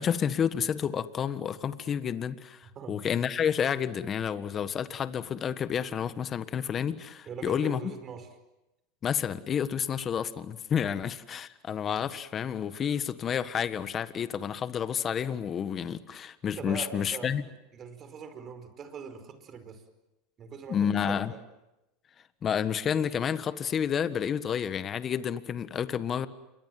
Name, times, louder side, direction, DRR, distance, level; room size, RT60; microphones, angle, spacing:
voice 1, 0.0-7.8 9.0-17.4 20.7-21.3 22.4-26.3, left 8 dB, 35° left, 12 dB, 1.5 m, -30 dB
voice 2, 7.2-8.3 10.8-11.0 16.5-17.3 17.7-19.8 20.4-20.8 21.1-21.4, right 6 dB, 35° right, 10 dB, 5.0 m, -42 dB
28.5 x 23.5 x 7.8 m, 0.96 s
supercardioid pair, 110°, 0 cm